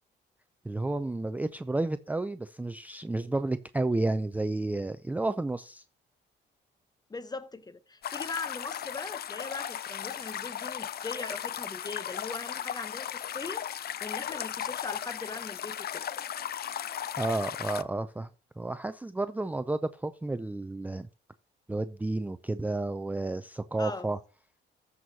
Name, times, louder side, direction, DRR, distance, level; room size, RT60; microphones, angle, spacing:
voice 1, 0.6-5.8 17.2-18.3 18.6-21.1 21.7-24.2, right 2 dB, 10° right, 0.4 m, -31 dB
voice 2, 7.1-16.1 23.8-24.1, left 3 dB, 20° left, 0.8 m, -40 dB
sound 1, 8.0-17.8, left 10 dB, 50° left, 0.5 m, -36 dB
14.0 x 6.2 x 2.8 m
cardioid pair, 90°, 20 cm